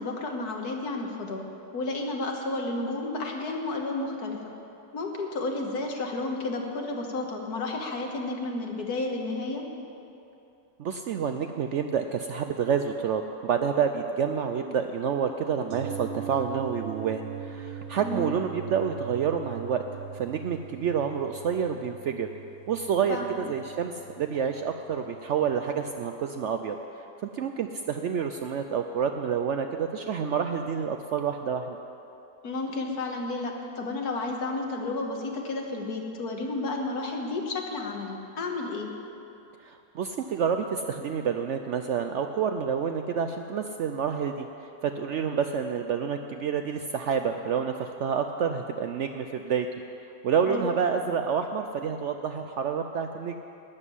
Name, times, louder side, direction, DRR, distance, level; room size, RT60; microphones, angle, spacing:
voice 1, 0.0-1.4 1.7-4.4 4.9-9.7 18.0-18.3 23.1-23.5 32.4-38.9 50.5-50.7, left 2 dB, 75° left, 2 dB, 1.9 m, -32 dB
voice 2, 10.8-19.8 20.1-22.3 22.7-26.8 27.2-31.8 39.6-44.5 44.8-49.7 50.2-53.4, right 7 dB, 70° right, 6 dB, 0.7 m, -28 dB
sound 1, 15.7-25.6 25.9-26.0, right 8 dB, 85° right, 1.5 m, -41 dB
12.0 x 7.3 x 9.8 m, 2.8 s
omnidirectional pair, 1.7 m